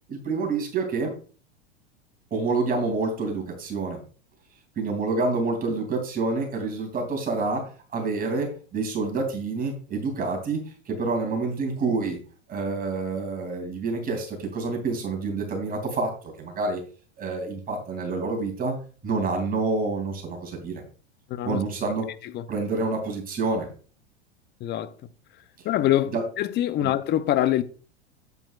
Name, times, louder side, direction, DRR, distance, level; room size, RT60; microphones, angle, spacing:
voice 1, 0.1-1.1 2.3-4.0 4.8-10.6 10.9-12.2 12.5-16.8 17.2-18.8 19.0-20.8 21.4-22.1 22.5-23.7 26.1-26.2 26.8-26.9, right 3 dB, 25° right, 3.0 m, -28 dB
voice 2, 21.3-21.6 22.3-22.4 24.6-24.9 25.6-27.6, left 12 dB, 30° left, 0.7 m, -24 dB
8.7 x 8.5 x 2.5 m
hypercardioid pair, 110°, 33 cm